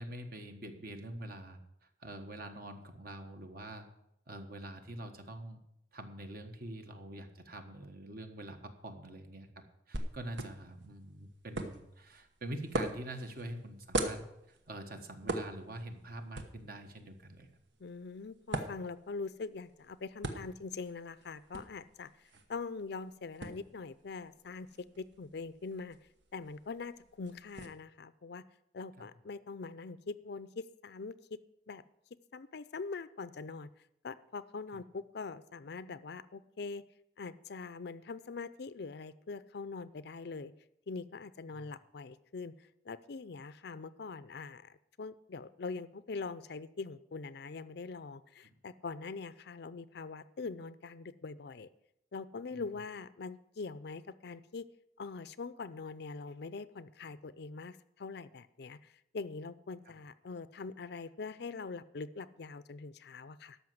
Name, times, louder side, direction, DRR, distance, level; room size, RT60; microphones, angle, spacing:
voice 1, 0.0-1.6 2.0-3.9 4.3-5.6 5.9-9.5 9.9-17.5 29.0-29.1 41.5-41.7 48.4-48.5 52.5-52.6 59.9-60.0, right 1 dB, 55° right, 6 dB, 1.3 m, -45 dB
sound 1, 9.9-27.7, right 2 dB, 85° right, 1.2 m, -43 dB
voice 2, 17.8-26.0 26.3-28.4 28.7-31.2 31.7-31.8 32.1-33.7 34.0-36.8 37.2-40.5 40.9-42.5 42.8-51.7 52.1-54.7 55.0-63.6, left 4 dB, 65° left, 15 dB, 0.5 m, -43 dB
13.0 x 5.6 x 7.8 m, 0.80 s
head